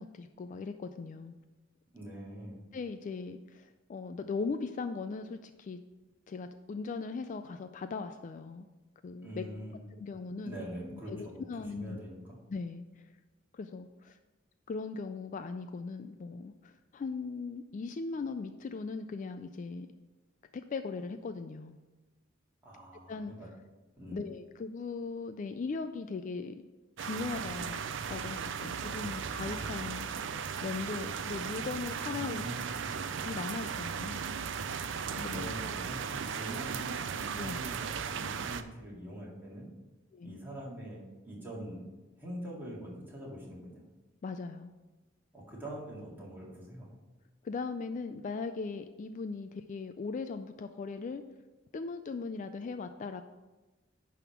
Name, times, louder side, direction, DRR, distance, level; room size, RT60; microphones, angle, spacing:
voice 1, 0.0-1.4 2.7-5.8 6.3-8.7 9.0-9.4 10.0-10.7 10.9-12.0 12.5-13.1 13.5-14.2 14.7-19.9 20.5-21.8 23.1-23.3 24.1-26.6 27.0-27.8 28.1-30.1 30.6-32.4 33.2-34.2 35.2-35.5 37.3-37.6 40.1-40.4 44.2-44.7 47.4-51.2 51.7-53.2, left 4 dB, 40° left, 9 dB, 0.3 m, -39 dB
voice 2, 1.9-2.6 9.2-9.8 10.4-11.4 11.7-12.4 22.6-23.5 24.0-24.2 32.1-32.8 35.1-39.7 40.2-41.8 42.2-43.8 45.3-46.9, right 1 dB, 10° right, -6 dB, 2.2 m, -43 dB
sound 1, 27.0-38.6, right 6 dB, 65° right, 0.5 m, -37 dB
10.5 x 3.6 x 5.8 m, 1.2 s
head